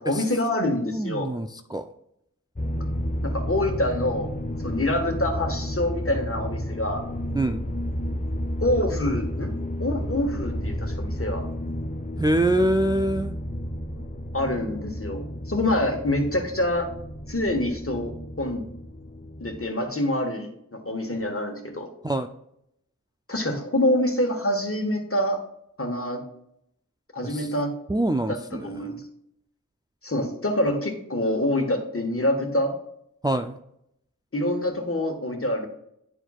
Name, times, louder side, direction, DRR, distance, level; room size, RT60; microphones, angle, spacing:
voice 1, 0.0-1.3 3.2-4.3 4.6-7.0 8.6-9.5 9.8-11.5 13.9-14.0 14.3-16.9 17.3-18.6 19.4-21.9 23.3-25.4 25.8-26.2 27.1-27.7 28.3-28.9 30.0-32.7 34.3-35.7, left 1 dB, 45° left, 3 dB, 1.5 m, -26 dB
voice 2, 0.9-1.9 7.3-7.6 12.2-13.3 22.0-22.3 27.2-27.5 27.9-29.0 33.2-33.6, right 1 dB, 15° right, 7 dB, 0.4 m, -25 dB
sound 1, 2.6-19.6, equal, 25° left, 0.7 m, -31 dB
9.9 x 4.6 x 2.4 m, 0.75 s
wide cardioid pair, 40°, 32 cm